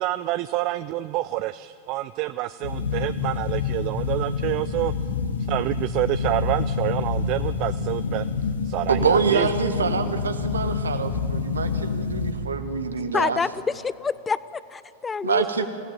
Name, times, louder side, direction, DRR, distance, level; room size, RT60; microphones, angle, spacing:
voice 1, 0.0-4.9 5.5-8.2 8.7-9.5, right 16 dB, 40° right, 14 dB, 0.4 m, -27 dB
sound 1, 2.6-12.3, left 5 dB, 75° left, 1.7 m, -27 dB
voice 2, 8.9-13.4 15.2-15.7, right 5 dB, 70° right, 9 dB, 1.4 m, -25 dB
voice 3, 13.1-15.6, left 5 dB, 15° left, 17 dB, 0.5 m, -27 dB
27.0 x 17.0 x 7.3 m, 2.4 s
figure-of-eight pair, 90°, 0 cm